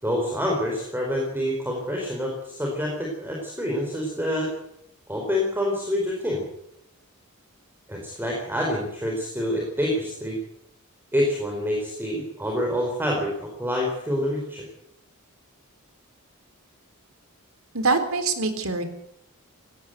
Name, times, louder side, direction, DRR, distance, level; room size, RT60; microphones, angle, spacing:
voice 1, 0.0-4.5 5.1-6.4 7.9-10.4 11.1-14.6, equal, 10° right, -1 dB, 4.6 m, -27 dB
voice 2, 17.7-18.8, right 3 dB, 70° right, 9 dB, 3.7 m, -24 dB
18.5 x 17.5 x 8.1 m, 0.79 s
head